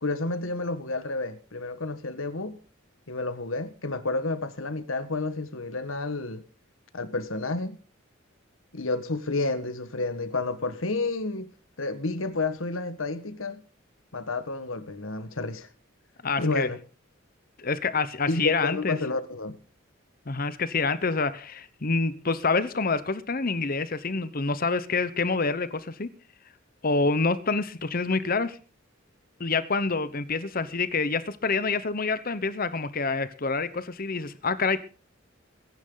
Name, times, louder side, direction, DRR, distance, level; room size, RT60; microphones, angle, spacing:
voice 1, 0.0-2.6 3.1-6.4 6.9-7.8 8.7-11.5 11.8-13.6 14.1-15.7 16.4-16.8 18.3-19.6, left 3 dB, 85° left, 1.6 m, -30 dB
voice 2, 16.2-16.7 17.6-19.0 20.3-26.1 26.8-28.6 29.4-34.8, left 4 dB, 45° left, 1.0 m, -27 dB
22.0 x 10.5 x 3.9 m
head